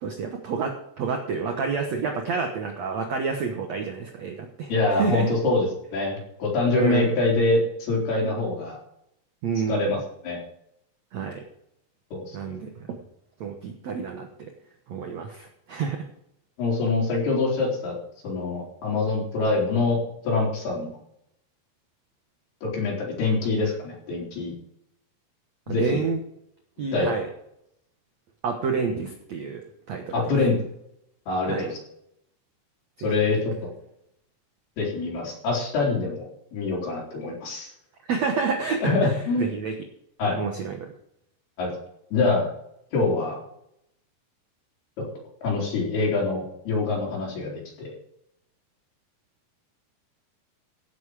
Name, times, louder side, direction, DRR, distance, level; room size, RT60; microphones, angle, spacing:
voice 1, 0.0-5.3 6.7-7.1 9.4-9.9 11.1-11.4 12.3-12.9 13.4-14.5 14.9-16.1 25.7-26.2 26.8-27.3 28.4-30.1 31.5-31.7 33.0-33.3 38.1-39.7 40.4-40.9, right 5 dB, 65° right, 3 dB, 1.7 m, -29 dB
voice 2, 4.7-5.7 5.9-8.8 9.7-10.0 10.2-10.4 12.1-12.5 16.6-17.9 18.2-20.0 20.2-20.9 22.6-24.5 25.7-25.9 26.9-27.1 30.1-30.5 31.3-31.8 33.0-33.7 34.8-37.7 38.8-39.5 40.2-40.4 41.6-41.7 42.1-42.5 42.9-43.4 45.4-47.9, left 3 dB, 65° left, -3 dB, 6.0 m, -25 dB
16.0 x 7.9 x 4.9 m, 0.76 s
omnidirectional pair, 4.8 m